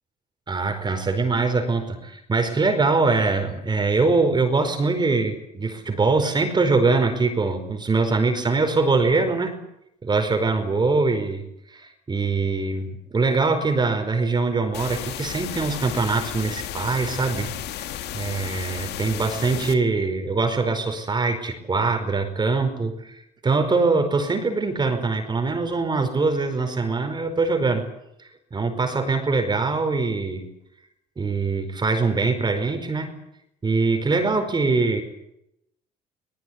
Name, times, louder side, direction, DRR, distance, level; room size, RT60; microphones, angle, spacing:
voice 1, 0.5-9.6 10.0-27.8 28.5-30.5 31.2-33.1 33.6-35.0, right 3 dB, 25° right, 6 dB, 4.9 m, -23 dB
sound 1, 14.7-19.7, left 12 dB, 80° left, 2.1 m, -33 dB
22.0 x 20.5 x 9.6 m, 0.81 s
cardioid pair, 110°, 17 cm